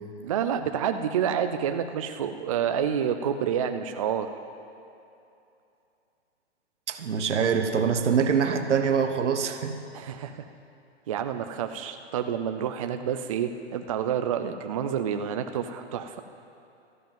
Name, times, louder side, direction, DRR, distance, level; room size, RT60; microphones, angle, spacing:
voice 1, 0.2-4.3 9.9-10.4 11.1-16.2, right 8 dB, 30° right, 7 dB, 0.4 m, -28 dB
voice 2, 6.9-9.7, right 6 dB, 80° right, 7 dB, 1.4 m, -24 dB
13.5 x 10.5 x 7.5 m, 2.7 s
hypercardioid pair, 155°, 35 cm